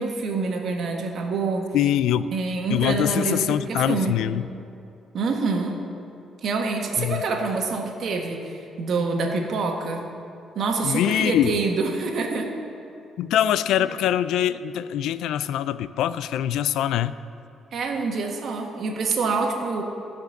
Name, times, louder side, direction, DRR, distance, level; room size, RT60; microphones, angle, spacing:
voice 1, 0.0-1.7 2.3-4.1 5.1-5.8 6.4-10.1 10.5-12.5 17.7-19.8, right 4 dB, 65° right, 2 dB, 1.5 m, -26 dB
voice 2, 1.7-2.3 2.7-4.4 7.0-7.2 10.8-11.6 13.2-17.1, left 11 dB, 85° left, 15 dB, 0.3 m, -23 dB
15.0 x 5.2 x 6.5 m, 2.6 s
cardioid pair, 90°, 0 cm